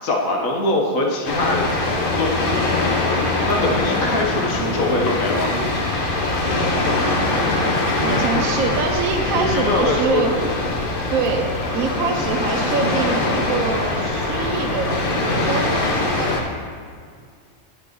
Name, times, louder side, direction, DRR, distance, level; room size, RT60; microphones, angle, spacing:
voice 1, 0.0-2.4 3.5-5.5 9.4-10.6, left 2 dB, 80° left, 0 dB, 1.5 m, -23 dB
sound 1, 1.3-16.4, left 2 dB, 45° left, 1.1 m, -22 dB
voice 2, 7.3-10.3 11.1-16.3, right 4 dB, 85° right, 2 dB, 1.1 m, -25 dB
10.0 x 7.8 x 3.0 m, 2.1 s
omnidirectional pair, 1.4 m